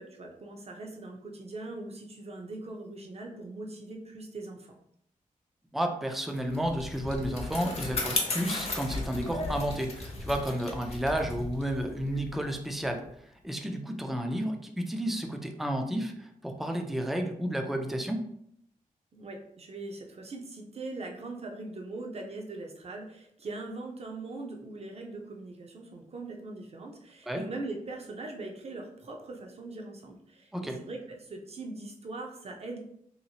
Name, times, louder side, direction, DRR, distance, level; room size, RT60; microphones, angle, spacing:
voice 1, 0.0-4.8 19.1-32.8, right 2 dB, 45° right, 1 dB, 0.6 m, -41 dB
voice 2, 5.7-13.1 13.4-18.2 27.3-27.4 30.5-30.8, equal, ahead, 4 dB, 0.4 m, -32 dB
Bicycle, 6.4-13.1, left 2 dB, 45° left, 0.7 m, -35 dB
3.0 x 2.9 x 2.8 m, 0.71 s
wide cardioid pair, 125°, 14 cm